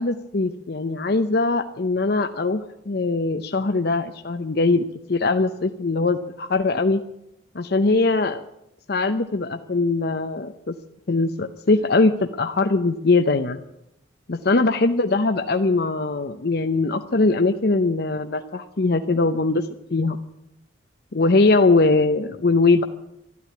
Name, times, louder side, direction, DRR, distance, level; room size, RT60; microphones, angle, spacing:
voice 1, 0.0-7.0 7.5-8.4 8.9-10.8 11.1-13.6 14.3-20.2 21.1-22.8, left 3 dB, 60° left, 7 dB, 0.7 m, -21 dB
12.5 x 12.0 x 9.5 m, 0.81 s
head